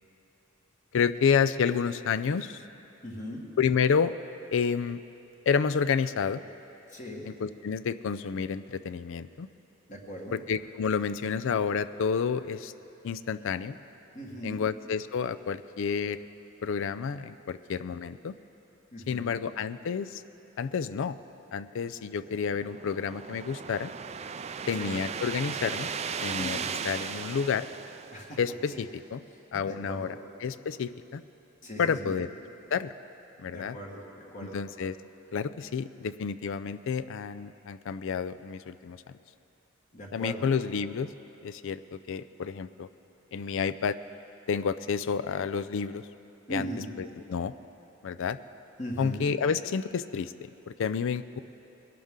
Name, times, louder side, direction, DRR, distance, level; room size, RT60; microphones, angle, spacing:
voice 1, 0.9-2.6 3.6-4.1 4.5-5.0 5.5-6.4 7.3-9.5 10.3-12.7 13.0-13.8 14.4-16.2 16.6-18.3 19.1-20.2 20.6-21.2 21.5-23.9 24.7-25.9 26.2-26.6 26.8-27.7 28.4-29.2 29.5-30.1 30.4-31.2 31.8-32.3 32.7-32.9 33.4-33.8 34.4-35.0 35.3-39.2 40.1-41.1 41.4-42.9 43.3-44.0 44.5-46.1 46.5-46.7 47.0-47.5 48.0-48.4 49.0-51.4, left 6 dB, 65° left, 14 dB, 0.4 m, -30 dB
voice 2, 3.0-3.4 6.9-7.2 9.9-10.4 14.1-14.6 18.9-19.4 24.7-25.0 26.4-26.7 28.1-28.4 28.7-28.8 29.6-30.1 31.6-32.2 33.5-34.6 39.9-40.5 46.5-46.9 48.8-49.2, equal, 40° left, -1 dB, 1.5 m, -39 dB
sound 1, 22.2-28.7, right 6 dB, 30° right, 0.4 m, -37 dB
21.0 x 11.5 x 3.7 m, 3.0 s
head